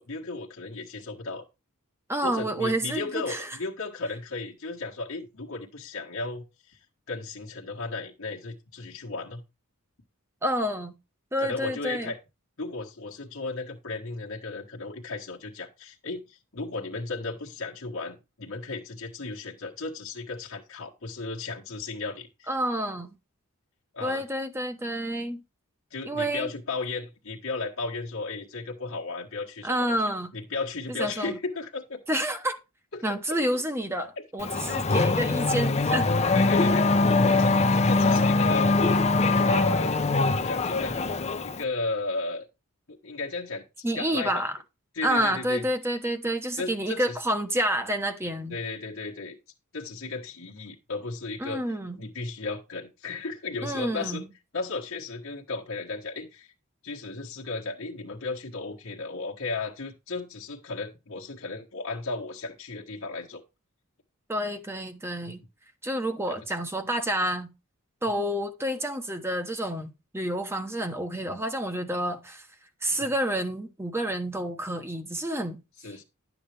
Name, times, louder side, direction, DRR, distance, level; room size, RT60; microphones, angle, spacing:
voice 1, 0.0-1.4 2.2-6.8 7.1-9.4 11.4-12.2 12.6-22.5 23.9-24.2 25.9-30.0 30.3-32.0 32.9-33.0 33.3-33.4 34.2-34.3 36.3-38.7 39.4-40.0 40.4-41.0 41.4-42.4 42.9-44.4 44.9-45.6 46.6-47.2 48.5-49.4 49.7-51.6 52.0-54.3 54.5-56.5 56.8-63.4 65.2-65.3 66.3-66.4 72.9-73.1 75.8-76.0, left 3 dB, 60° left, 1.4 m, -35 dB
voice 2, 2.1-3.5 10.4-10.9 11.3-12.1 22.5-23.1 24.0-25.4 26.0-26.5 29.6-30.3 31.0-31.4 32.1-32.6 33.0-36.1 43.8-44.5 45.0-48.6 51.4-52.0 53.6-54.3 64.3-65.4 65.8-67.5 68.0-72.5 72.8-76.0, right 1 dB, 10° right, 0.9 m, -29 dB
Race car auto racing / Accelerating revving vroom, 34.4-41.6, left 3 dB, 30° left, 0.6 m, -23 dB
11.5 x 7.1 x 3.3 m
head